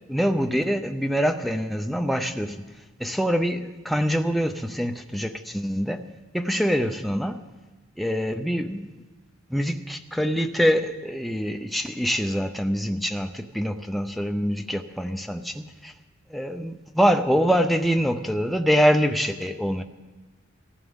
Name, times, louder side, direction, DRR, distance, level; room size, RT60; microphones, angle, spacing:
voice 1, 0.1-2.7 3.0-6.1 6.3-7.4 8.0-8.9 9.5-15.9 16.3-19.8, equal, ahead, 6 dB, 0.5 m, -25 dB
18.0 x 15.0 x 3.6 m, 1.2 s
head